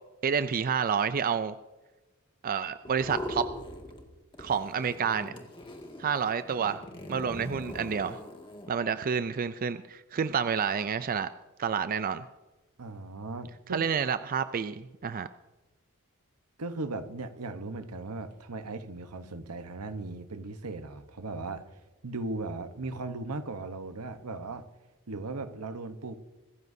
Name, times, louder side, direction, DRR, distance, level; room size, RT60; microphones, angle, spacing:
voice 1, 0.2-1.5 2.4-3.4 4.4-5.3 6.0-6.8 7.1-8.2 8.7-11.3 11.6-12.2 13.7-15.3, right 6 dB, 40° right, 12 dB, 0.4 m, -29 dB
sound 1, 2.8-4.1 4.3-8.7, left 1 dB, 25° left, 2.0 m, -41 dB
voice 2, 12.8-13.8 16.6-21.6 22.0-24.6 25.1-26.2, right 3 dB, 80° right, 9 dB, 1.0 m, -37 dB
25.0 x 14.5 x 2.7 m, 1.2 s
head